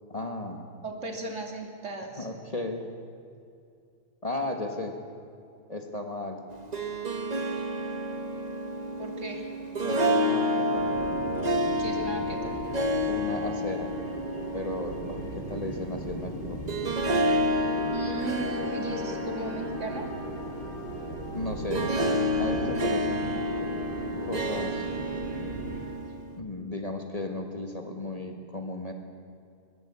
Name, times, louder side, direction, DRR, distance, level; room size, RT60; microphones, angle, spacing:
voice 1, 0.1-0.6 2.2-2.8 4.2-5.0 5.7-6.4 9.8-10.9 13.1-13.9 14.5-16.6 21.3-22.0 22.4-23.4 24.2-24.9 26.4-28.9, left 2 dB, 25° left, 4 dB, 1.8 m, -35 dB
voice 2, 0.8-2.3 9.0-9.5 11.8-12.6 17.9-20.1, right 2 dB, 55° right, 3 dB, 3.0 m, -36 dB
Harp, 6.5-26.3, equal, 30° right, 1.3 m, -30 dB
sound 1, 10.7-25.8, right 1 dB, 80° right, 5.2 m, -38 dB
21.5 x 21.0 x 8.4 m, 2.5 s
omnidirectional pair, 1.5 m